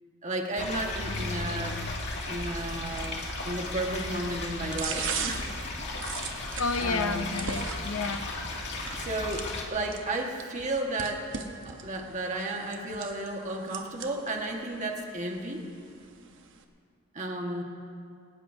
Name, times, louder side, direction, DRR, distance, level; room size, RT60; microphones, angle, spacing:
voice 1, 0.2-1.8 2.3-5.5 5.8-5.9 6.8-7.3 8.9-11.3 11.6-15.7 17.1-17.6, right 2 dB, 35° right, 1 dB, 1.6 m, -33 dB
sound 1, 0.6-9.6, left 2 dB, 55° left, 2.3 m, -36 dB
sound 2, 0.6-6.6, left 3 dB, 35° left, 0.4 m, -43 dB
sound 3, 0.7-16.6, right 6 dB, 60° right, 1.1 m, -42 dB
voice 2, 6.6-8.2, left 4 dB, 75° left, 9 dB, 0.8 m, -30 dB
21.0 x 18.5 x 2.7 m, 2.4 s
head